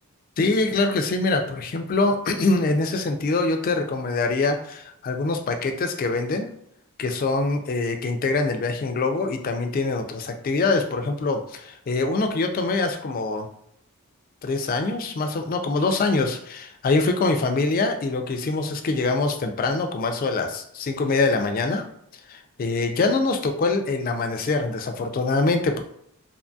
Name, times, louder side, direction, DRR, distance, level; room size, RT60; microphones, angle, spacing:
voice 1, 0.4-6.5 7.0-13.5 14.4-21.8 22.3-25.8, left 3 dB, 40° left, 5 dB, 0.3 m, -24 dB
2.7 x 2.6 x 2.2 m, 0.71 s
head